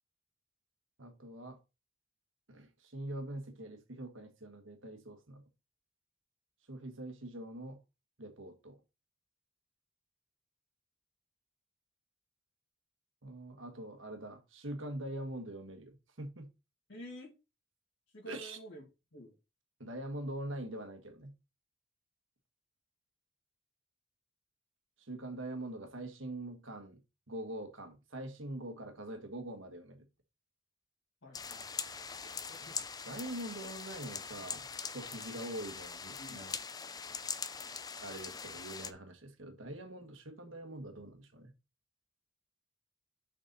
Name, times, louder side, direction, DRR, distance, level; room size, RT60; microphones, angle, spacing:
voice 1, 1.0-1.6 2.5-5.4 6.7-7.8 8.2-8.8 13.2-16.5 18.3-18.6 19.8-21.3 25.0-27.0 27.3-30.0 33.0-36.6 38.0-41.5, right 1 dB, 65° right, 1.6 m, -44 dB
voice 2, 16.9-17.3 18.1-18.8 19.1-19.4 31.2-31.8 32.5-32.8 36.2-36.5, right 1 dB, 65° left, 2.6 m, -49 dB
sound 1, 31.3-38.9, left 5 dB, 20° left, 0.5 m, -42 dB
6.7 x 5.3 x 4.0 m
head